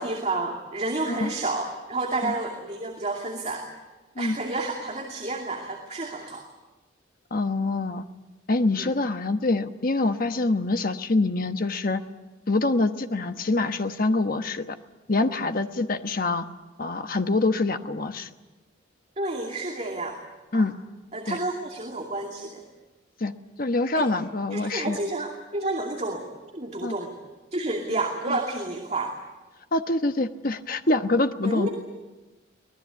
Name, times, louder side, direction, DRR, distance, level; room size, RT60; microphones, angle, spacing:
voice 1, 0.0-3.7 4.2-6.4 8.8-8.9 19.2-20.2 20.5-20.6 21.1-22.6 23.9-24.1 24.5-26.2 26.5-27.2 27.5-29.2 31.4-31.7, right 2 dB, 35° right, 0 dB, 2.5 m, -30 dB
voice 2, 7.3-8.0 8.5-12.0 12.5-14.7 15.1-16.4 16.8-18.3 20.5-20.7 21.3-21.4 23.2-23.3 23.6-25.0 26.8-26.9 28.3-28.4 29.7-31.7, left 2 dB, 45° left, 8 dB, 1.1 m, -25 dB
24.5 x 19.5 x 8.4 m, 1.2 s
head